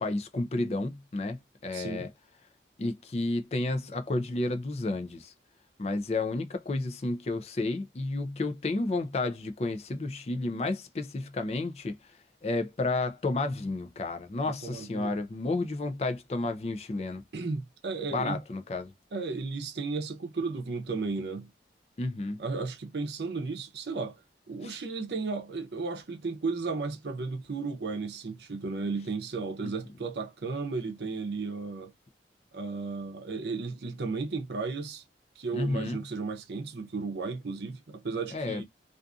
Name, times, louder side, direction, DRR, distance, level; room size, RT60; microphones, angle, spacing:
voice 1, 0.0-2.1 2.8-5.3 5.8-12.0 12.4-17.2 18.1-18.9 22.0-22.4 24.6-24.8 29.6-29.7 35.5-36.0 38.3-38.6, left 2 dB, 35° left, 0.4 m, -31 dB
voice 2, 1.7-2.1 14.4-15.2 17.3-18.4 19.1-21.5 22.4-24.2 24.5-31.9 32.5-35.0 35.4-38.6, right 4 dB, 70° right, 0.6 m, -34 dB
2.5 x 2.5 x 2.3 m
head